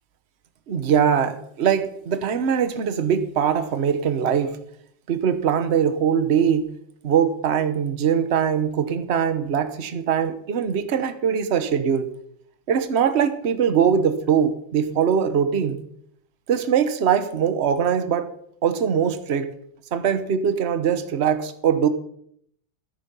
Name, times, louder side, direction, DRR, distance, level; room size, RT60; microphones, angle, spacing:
voice 1, 0.7-4.6 5.1-6.7 7.0-12.1 12.7-15.8 16.5-18.3 18.6-19.5 19.9-21.9, right 7 dB, 40° right, 11 dB, 1.0 m, -22 dB
14.0 x 10.0 x 5.4 m, 0.70 s
omnidirectional pair, 2.1 m